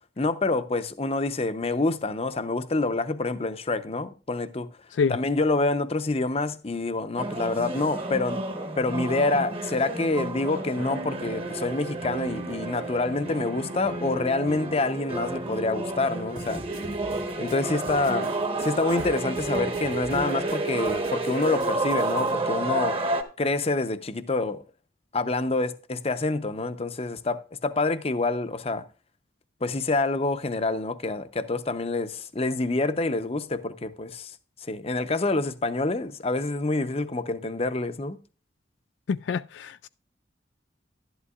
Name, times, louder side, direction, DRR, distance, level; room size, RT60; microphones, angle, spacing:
voice 1, 0.2-4.7 5.1-8.4 8.8-16.6 17.4-18.3 18.6-23.0 23.4-24.6 25.1-28.8 29.6-34.3 34.6-38.2, left 3 dB, 35° left, 0.7 m, -27 dB
sound 1, 7.2-23.2, right 2 dB, 30° right, 1.2 m, -30 dB
sound 2, 16.4-22.3, right 1 dB, 50° right, 2.1 m, -45 dB
voice 2, 39.1-39.9, left 5 dB, 85° left, 0.3 m, -26 dB
11.5 x 11.0 x 2.4 m
head